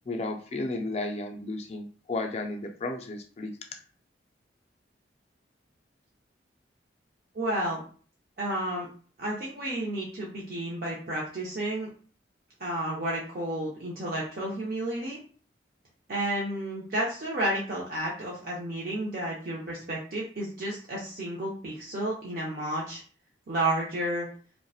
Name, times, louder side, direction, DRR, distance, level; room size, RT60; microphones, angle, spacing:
voice 1, 0.1-3.5, left 2 dB, 35° left, 3 dB, 0.3 m, -33 dB
voice 2, 7.3-7.8 8.4-8.9 9.2-11.9 12.6-15.2 16.1-23.0 23.5-24.3, right 1 dB, 50° right, -5 dB, 0.5 m, -31 dB
2.7 x 2.1 x 2.3 m, 0.42 s
head